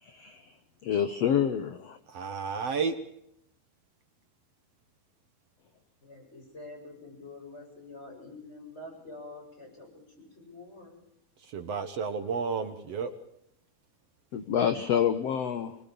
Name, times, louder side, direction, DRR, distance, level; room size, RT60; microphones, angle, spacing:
voice 1, 0.0-0.5 0.8-2.0 14.3-15.8, left 8 dB, 60° left, 10 dB, 1.7 m, -27 dB
voice 2, 2.1-2.9 11.5-13.1, right 5 dB, 55° right, 8 dB, 2.0 m, -31 dB
voice 3, 6.0-11.0, left 2 dB, 15° left, 2 dB, 7.8 m, -47 dB
25.5 x 20.5 x 7.0 m, 0.75 s
omnidirectional pair, 4.3 m